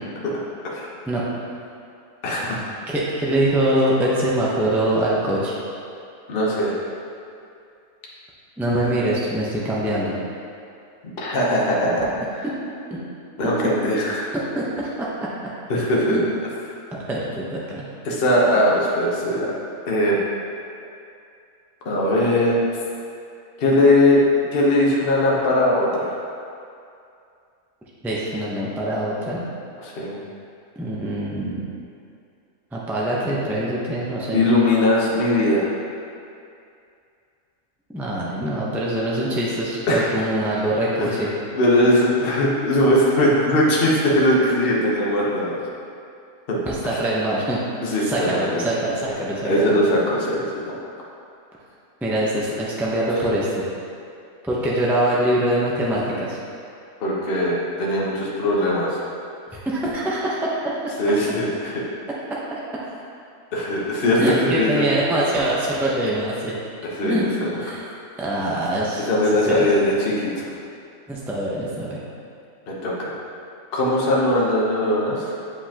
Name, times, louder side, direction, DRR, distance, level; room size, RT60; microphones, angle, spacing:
voice 1, 2.2-2.6 6.3-6.8 11.2-12.5 13.4-14.3 15.7-16.2 18.0-19.5 19.9-20.2 21.8-22.6 23.6-24.2 24.5-26.2 29.8-30.2 34.3-35.7 39.9-40.1 41.0-41.3 41.5-45.6 46.5-47.0 47.8-48.8 49.4-50.8 57.0-58.9 61.0-61.7 63.5-64.9 66.8-67.5 69.1-70.5 72.7-73.1 73.7-75.3, left 1 dB, 45° left, -4 dB, 1.1 m, -20 dB
voice 2, 2.9-5.5 8.6-10.1 12.9-13.0 14.5-15.3 16.1-16.2 17.1-17.8 28.0-29.4 30.8-31.6 32.7-34.4 37.9-41.3 46.6-47.6 48.0-49.7 52.0-53.6 54.4-56.4 59.5-60.9 64.2-66.5 67.0-67.3 67.6-67.8 68.2-69.0 69.5-69.7 71.1-72.0, right 1 dB, ahead, -6 dB, 0.6 m, -23 dB
8.0 x 5.2 x 2.9 m, 2.5 s
omnidirectional pair, 1.4 m